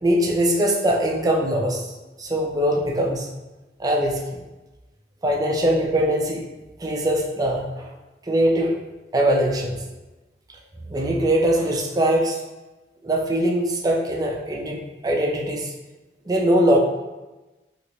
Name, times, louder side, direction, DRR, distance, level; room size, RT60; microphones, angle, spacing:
voice 1, 0.0-1.8 2.2-3.3 3.8-4.4 5.2-6.4 6.8-7.9 8.3-8.7 9.1-9.8 10.9-12.4 13.0-15.7 16.3-16.8, right 1 dB, 20° right, -1 dB, 0.5 m, -21 dB
3.0 x 2.8 x 2.9 m, 1.1 s
head